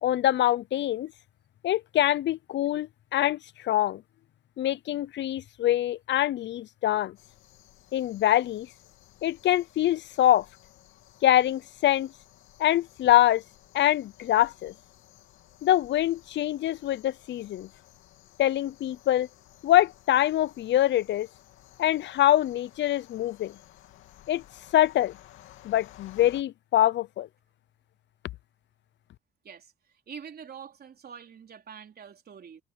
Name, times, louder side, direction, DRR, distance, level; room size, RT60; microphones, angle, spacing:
voice 1, 0.0-1.1 1.6-4.0 4.6-7.2 7.9-8.7 9.2-10.5 11.2-12.1 12.6-13.4 13.7-14.7 15.6-17.7 18.4-19.3 19.6-21.3 21.8-23.6 24.3-24.4 24.7-25.1 25.6-27.3, left 13 dB, 65° left, 0.5 m, -24 dB
sound 1, 7.2-26.4, left 13 dB, 90° left, 2.6 m, -55 dB
voice 2, 30.1-32.6, right 7 dB, 50° right, 4.0 m, -45 dB
cardioid pair, 90°, 20 cm